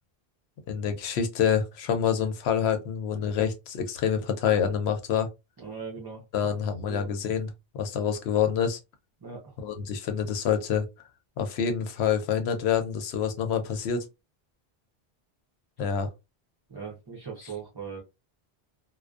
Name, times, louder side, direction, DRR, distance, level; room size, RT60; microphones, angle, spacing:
voice 1, 0.7-5.3 6.3-8.8 9.6-10.8 11.4-14.1 15.8-16.1, left 7 dB, 85° left, 0.8 m, -27 dB
voice 2, 5.6-6.2 6.9-7.1 9.2-9.6 16.7-18.0, right 5 dB, 30° right, 0.5 m, -39 dB
2.4 x 2.1 x 2.3 m
omnidirectional pair, 1.1 m